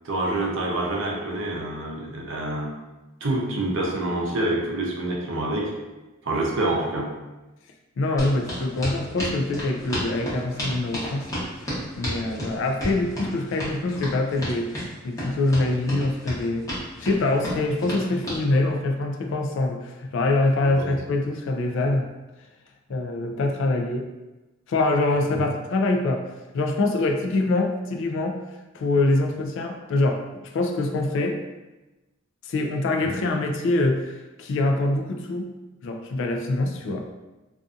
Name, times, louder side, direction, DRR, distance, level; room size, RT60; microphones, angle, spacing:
voice 1, 0.0-2.7 3.2-5.7 6.2-7.1 20.6-20.7 33.0-33.1, right 2 dB, 65° right, -1 dB, 0.6 m, -26 dB
voice 2, 8.0-11.3 12.0-14.7 15.0-16.7 17.0-22.1 22.9-24.1 24.7-26.2 26.5-28.4 28.7-30.2 30.5-31.4 32.4-35.5 35.8-37.1, left 2 dB, 65° left, 3 dB, 0.3 m, -24 dB
sound 1, 8.2-18.4, equal, 15° left, 0.8 m, -32 dB
2.6 x 2.4 x 2.4 m, 1.1 s
head